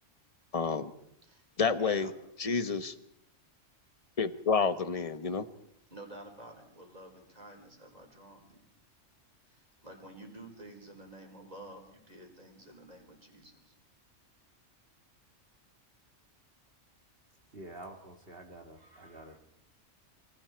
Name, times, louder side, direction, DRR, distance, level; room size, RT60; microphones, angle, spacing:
voice 1, 0.5-0.9 1.6-2.1 2.4-2.9 4.2-5.4, left 5 dB, 30° left, 11 dB, 1.1 m, -29 dB
voice 2, 1.2-2.1 5.9-8.6 9.5-13.7, right 1 dB, 30° right, 1 dB, 4.8 m, -50 dB
voice 3, 17.5-19.4, right 1 dB, 50° right, 3 dB, 2.5 m, -48 dB
28.5 x 25.0 x 4.6 m, 0.80 s
omnidirectional pair, 1.3 m